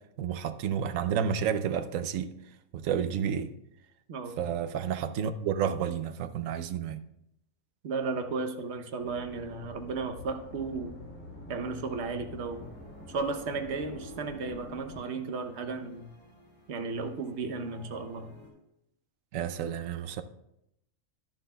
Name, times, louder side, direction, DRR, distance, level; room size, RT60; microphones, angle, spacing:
voice 1, 0.2-2.3 2.7-3.5 4.4-7.0 19.3-20.2, right 8 dB, 85° right, 1.0 m, -30 dB
voice 2, 7.8-11.0 11.5-12.7 13.1-16.1 16.7-18.3, right 4 dB, 60° right, 1.1 m, -34 dB
sound 1, 9.0-15.0, left 1 dB, 75° left, 4.0 m, -47 dB
sound 2, 12.5-18.5, left 1 dB, 30° left, 3.2 m, -54 dB
11.5 x 11.0 x 2.3 m
omnidirectional pair, 1.3 m